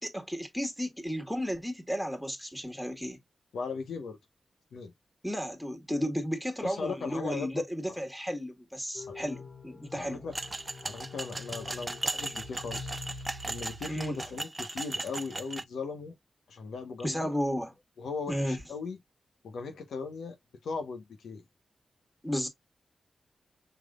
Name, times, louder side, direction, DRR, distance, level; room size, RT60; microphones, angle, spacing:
voice 1, 0.0-3.2 5.2-10.3 13.9-14.2 17.0-17.7 18.3-18.6 22.2-22.5, equal, 5° left, 1.9 m, -33 dB
voice 2, 3.5-4.2 4.7-4.9 6.6-7.6 9.1-9.2 9.9-10.3 10.8-16.1 16.5-17.3 18.0-19.0 19.4-20.3 20.6-21.4, left 4 dB, 85° left, 1.2 m, -38 dB
sound 1, 8.9-14.3, left 3 dB, 50° left, 2.1 m, -45 dB
sound 2, 10.3-15.6, right 2 dB, 30° right, 0.5 m, -37 dB
5.8 x 3.4 x 2.4 m
cardioid pair, 50°, 0 cm